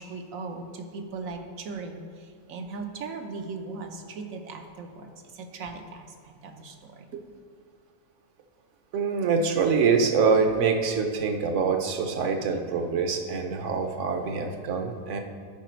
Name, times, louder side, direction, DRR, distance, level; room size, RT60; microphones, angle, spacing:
voice 1, 0.0-7.1, right 4 dB, 80° right, 4 dB, 1.2 m, -38 dB
voice 2, 8.9-15.2, right 5 dB, 65° right, 5 dB, 1.1 m, -25 dB
12.0 x 5.0 x 4.5 m, 2.2 s
omnidirectional pair, 1.4 m